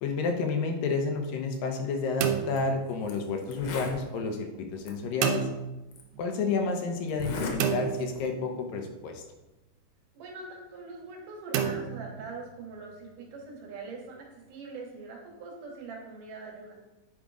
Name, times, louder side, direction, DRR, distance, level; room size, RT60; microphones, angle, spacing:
voice 1, 0.0-5.5 6.2-9.2, left 4 dB, 90° left, 4 dB, 2.7 m, -30 dB
sound 1, 2.2-3.5 5.2-6.2 7.6-8.8 11.5-12.7, right 8 dB, 90° right, 2.3 m, -31 dB
Zipper (clothing), 2.4-2.6 3.1-3.2 3.4-4.0 4.9-5.0 5.9-6.0 7.1-7.6 7.9-8.3, left 3 dB, 65° left, 2.3 m, -35 dB
voice 2, 10.1-16.8, right 3 dB, 75° right, -1 dB, 3.0 m, -42 dB
9.5 x 3.8 x 4.8 m, 1.0 s
omnidirectional pair, 3.8 m